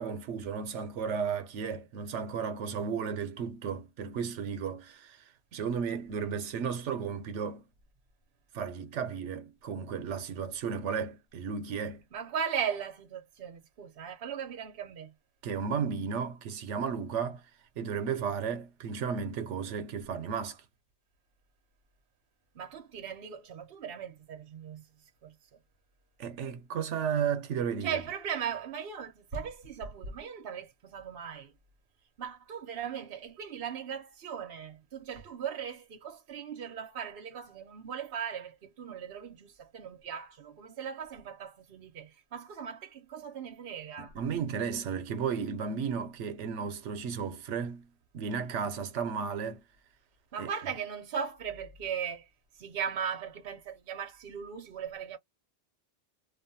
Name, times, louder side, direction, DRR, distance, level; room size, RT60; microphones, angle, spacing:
voice 1, 0.0-5.2 5.5-7.6 8.5-12.0 15.4-17.4 17.8-20.6 26.2-28.0 44.0-49.6 50.4-50.5, right 6 dB, 90° right, 1.0 m, -34 dB
voice 2, 12.1-15.1 22.5-24.8 25.2-25.3 27.8-31.5 32.2-44.1 50.3-52.3 52.6-55.2, right 7 dB, 60° right, 0.9 m, -38 dB
2.5 x 2.2 x 2.6 m
omnidirectional pair, 1.2 m